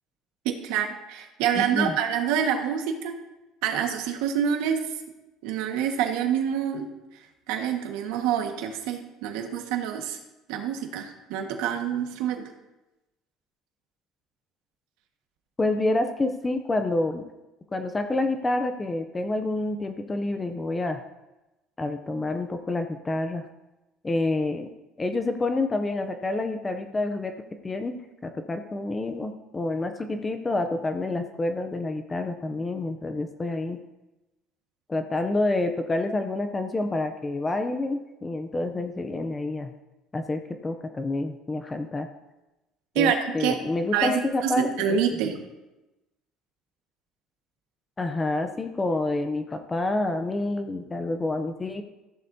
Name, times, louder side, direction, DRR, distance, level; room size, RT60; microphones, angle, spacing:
voice 1, 0.4-3.2 3.6-4.8 5.4-6.9 7.5-10.2 10.5-12.4 42.9-43.6 43.9-45.4, right 8 dB, 80° right, 4 dB, 1.5 m, -27 dB
voice 2, 1.5-1.9 15.6-17.2 17.7-21.0 21.8-23.5 24.0-24.7 25.0-27.3 27.6-33.8 34.9-39.7 40.1-42.1 43.0-45.0 48.0-51.8, left 2 dB, 15° left, 7 dB, 0.5 m, -28 dB
14.5 x 11.0 x 2.7 m, 1.0 s
cardioid pair, 170°, 0 cm